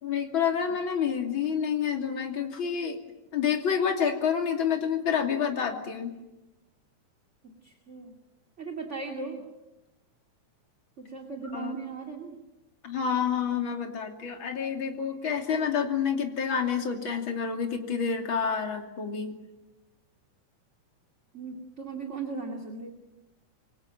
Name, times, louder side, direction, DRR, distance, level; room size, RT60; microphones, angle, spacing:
voice 1, 0.0-3.0 3.3-6.2 11.5-11.7 12.8-19.3, left 7 dB, 40° left, 3 dB, 3.4 m, -28 dB
voice 2, 7.4-8.1 8.6-9.5 11.0-12.4 21.3-22.9, right 4 dB, 25° right, 3 dB, 2.4 m, -37 dB
27.5 x 24.0 x 8.9 m, 0.98 s
omnidirectional pair, 3.6 m